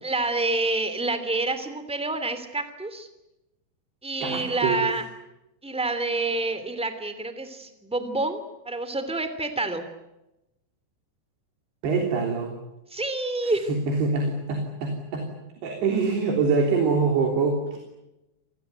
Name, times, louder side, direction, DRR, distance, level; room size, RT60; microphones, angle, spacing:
voice 1, 0.0-3.1 4.0-5.0 5.6-9.8 12.9-13.7, right 2 dB, ahead, 10 dB, 2.0 m, -28 dB
voice 2, 4.2-4.9 11.8-12.5 13.7-15.3 15.6-17.8, right 4 dB, 85° right, 2 dB, 5.5 m, -24 dB
27.0 x 20.5 x 9.3 m, 0.94 s
omnidirectional pair, 4.6 m